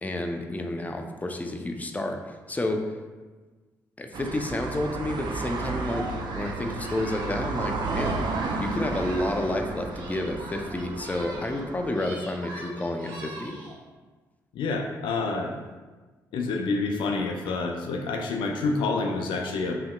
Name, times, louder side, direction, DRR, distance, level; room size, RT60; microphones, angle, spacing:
voice 1, 0.0-2.9 4.0-6.1 6.3-8.2 8.6-13.5, left 1 dB, 20° left, 4 dB, 0.5 m, -30 dB
sound 1, 4.1-12.0, right 3 dB, 60° right, 0.4 m, -33 dB
Singing, 5.8-9.6 9.9-11.6 11.9-13.8, right 1 dB, 80° right, 0.9 m, -41 dB
voice 2, 14.6-15.5 16.3-19.8, left 3 dB, 70° left, 3 dB, 0.4 m, -28 dB
5.5 x 2.9 x 2.2 m, 1.3 s
hypercardioid pair, 45°, 9 cm